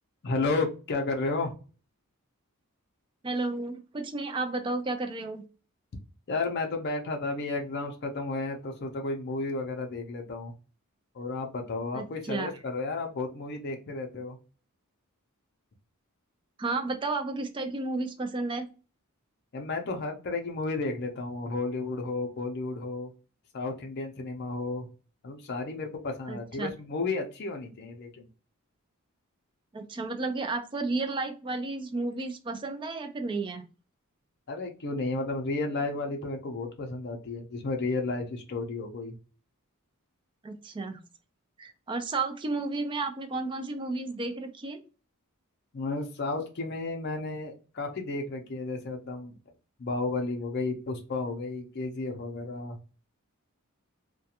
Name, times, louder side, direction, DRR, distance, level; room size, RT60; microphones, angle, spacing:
voice 1, 0.2-1.5 6.3-10.5 11.2-14.4 19.5-23.1 23.5-24.9 25.2-28.3 34.5-39.1 45.7-49.4 49.8-52.8, left 3 dB, 45° left, 3 dB, 0.5 m, -32 dB
voice 2, 3.2-5.4 11.9-12.5 16.6-18.7 26.3-26.7 29.7-33.6 40.4-41.0 41.6-44.8, right 3 dB, 20° right, 7 dB, 0.3 m, -32 dB
2.4 x 2.2 x 2.8 m, 0.35 s
head